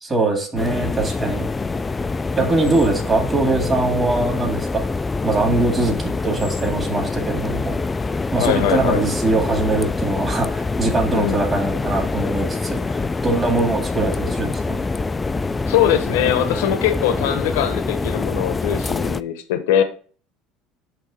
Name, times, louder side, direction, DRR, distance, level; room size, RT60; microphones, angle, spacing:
voice 1, 0.0-1.5 2.4-4.8 5.2-7.7 8.3-14.8, right 2 dB, 20° right, 2.2 m, -22 dB
sound 1, 0.6-19.2, left 3 dB, 15° left, 0.3 m, -25 dB
voice 2, 8.4-9.0 11.1-11.4 15.7-19.8, left 10 dB, 90° left, 0.9 m, -21 dB
8.0 x 3.2 x 5.0 m
supercardioid pair, 115°, 0 cm